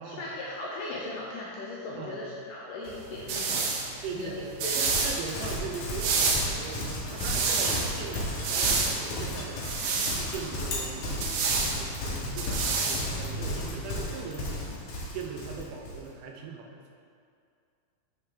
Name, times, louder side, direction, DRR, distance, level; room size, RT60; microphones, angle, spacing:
voice 1, 0.0-4.3 4.6-5.0, left 2 dB, 75° left, -5 dB, 2.0 m, -38 dB
voice 2, 2.0-2.3 4.0-16.9, right 5 dB, 90° right, 1 dB, 3.0 m, -40 dB
sound 1, 2.9-13.8, right 4 dB, 75° right, 2.3 m, -30 dB
Livestock farm animals working animals, 4.8-16.0, left 1 dB, 60° left, 2.7 m, -34 dB
11.5 x 5.7 x 3.4 m, 2.3 s
omnidirectional pair, 4.7 m